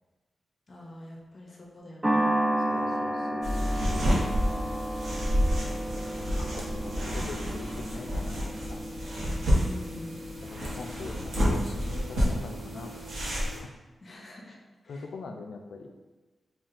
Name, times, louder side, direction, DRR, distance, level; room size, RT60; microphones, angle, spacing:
voice 1, 0.7-2.3 9.6-10.2 14.0-14.6 14.8-15.1, left 1 dB, 35° left, -1 dB, 0.6 m, -44 dB
sound 1, 2.0-10.5, right 1 dB, 15° right, 0.3 m, -32 dB
voice 2, 2.7-4.6 5.7-8.4 8.7-8.9 10.4-13.7 14.9-15.9, left 4 dB, 90° left, 3 dB, 0.4 m, -43 dB
sound 2, 3.4-13.6, equal, 75° right, 1.0 m, -29 dB
5.5 x 2.4 x 2.5 m, 1.2 s
wide cardioid pair, 180°, 0 cm